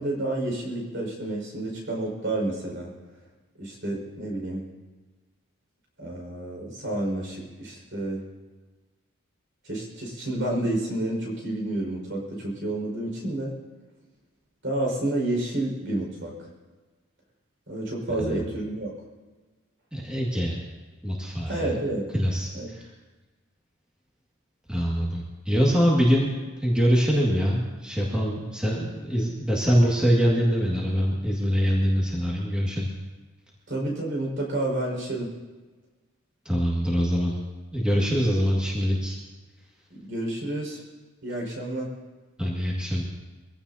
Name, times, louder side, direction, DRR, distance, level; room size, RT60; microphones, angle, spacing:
voice 1, 0.0-2.9 3.6-4.6 6.0-8.2 9.6-13.5 14.6-16.5 17.7-18.9 21.4-22.1 22.5-22.7 33.7-35.3 39.9-40.8 41.2-41.9, right 1 dB, 55° right, 0 dB, 5.3 m, -30 dB
voice 2, 19.9-20.6 21.0-21.7 22.1-22.9 24.7-26.3 26.6-32.9 36.5-37.3 37.7-39.2 42.4-43.0, equal, 5° right, -5 dB, 2.0 m, -24 dB
24.0 x 16.0 x 2.8 m, 1.3 s
head